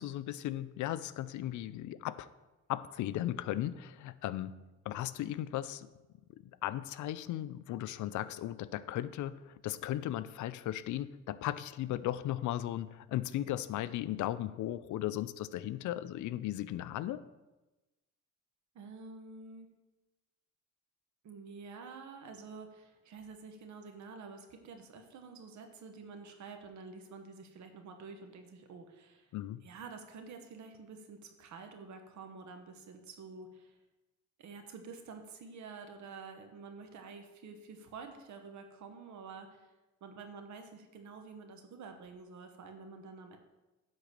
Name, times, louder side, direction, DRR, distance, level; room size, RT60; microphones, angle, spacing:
voice 1, 0.0-2.3 2.7-5.9 6.3-17.3 29.3-29.6, left 13 dB, 75° left, 15 dB, 0.5 m, -36 dB
voice 2, 18.7-19.7 21.2-29.3 29.6-33.8 34.4-39.7 40.0-43.4, right 4 dB, 70° right, 5 dB, 1.2 m, -49 dB
10.0 x 4.0 x 6.7 m, 1.1 s
cardioid pair, 90°, 30 cm